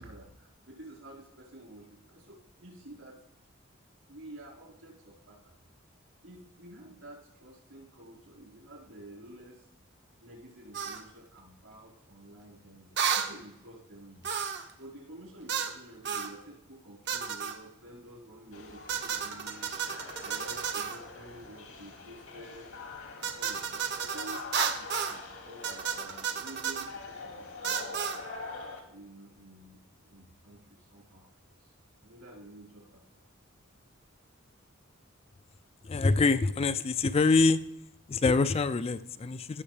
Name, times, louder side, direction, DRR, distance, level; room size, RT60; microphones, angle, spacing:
voice 1, 0.0-3.2 4.1-5.6 6.2-9.8 10.2-14.2 14.8-19.7 20.0-22.7 23.2-28.2 28.9-31.7 32.0-33.2, right 1 dB, 80° right, -4 dB, 4.7 m, -50 dB
sound 1, 10.7-11.0 13.0-13.3 14.2-14.7 15.5-15.8 16.1-16.3 17.1-17.6 18.9-21.0 23.2-25.2 25.6-26.9 27.6-28.2, right 7 dB, 55° right, 0.9 m, -32 dB
sound 2, 18.5-28.8, left 3 dB, 85° left, 2.2 m, -45 dB
voice 2, 35.8-37.6 38.1-39.6, left 3 dB, 30° left, 12 dB, 0.3 m, -25 dB
17.0 x 6.6 x 3.4 m, 0.83 s
head